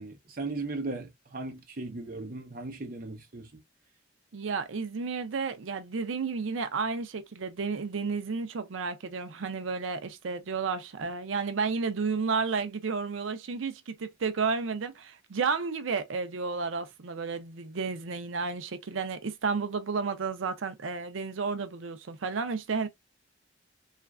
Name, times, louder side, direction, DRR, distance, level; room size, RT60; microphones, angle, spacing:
voice 1, 0.0-3.5, right 3 dB, 45° right, 0.7 m, -37 dB
voice 2, 4.3-22.9, right 5 dB, 85° right, 0.5 m, -32 dB
3.1 x 2.4 x 2.3 m
head